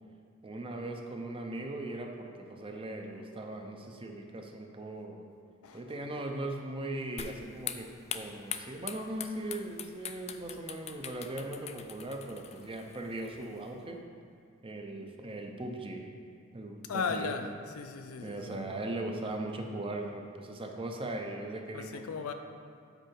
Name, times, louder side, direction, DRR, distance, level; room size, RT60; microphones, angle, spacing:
voice 1, 0.4-5.3 5.7-14.0 14.6-16.1 16.5-17.3 18.2-22.0, right 1 dB, 25° right, 3 dB, 0.6 m, -39 dB
sound 1, 7.2-13.8, left 8 dB, 30° left, 0.3 m, -43 dB
voice 2, 16.9-18.6 21.7-22.3, left 5 dB, 85° left, 7 dB, 0.5 m, -36 dB
7.9 x 4.7 x 4.5 m, 2.2 s
head